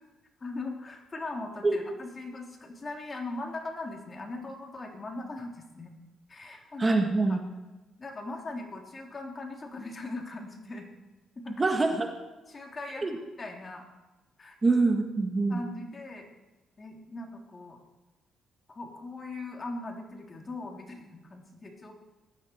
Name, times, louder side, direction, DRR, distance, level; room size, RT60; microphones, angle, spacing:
voice 1, 0.4-5.9 6.3-7.0 7.3-7.4 8.0-10.9 11.3-11.6 12.5-13.1 13.4-13.8 14.4-14.5 15.5-16.3 16.8-17.8 18.7-21.9, left 2 dB, 30° left, 2 dB, 3.3 m, -40 dB
voice 2, 6.8-7.4 11.6-12.1 13.0-13.2 14.6-15.6, right 3 dB, 25° right, 4 dB, 1.9 m, -25 dB
18.5 x 13.0 x 4.7 m, 1.1 s
cardioid pair, 90°, 0 cm